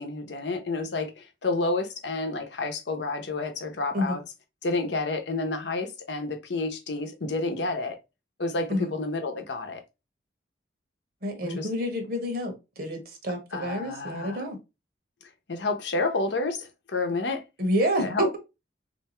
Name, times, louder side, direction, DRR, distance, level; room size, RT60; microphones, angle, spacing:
voice 1, 0.0-4.2 4.6-8.0 8.4-9.8 11.4-11.7 13.5-14.4 15.5-17.4 18.0-18.3, left 3 dB, 75° left, 0.8 m, -30 dB
voice 2, 11.2-14.6 17.6-18.4, equal, 55° right, 1.0 m, -28 dB
3.3 x 2.7 x 3.0 m
head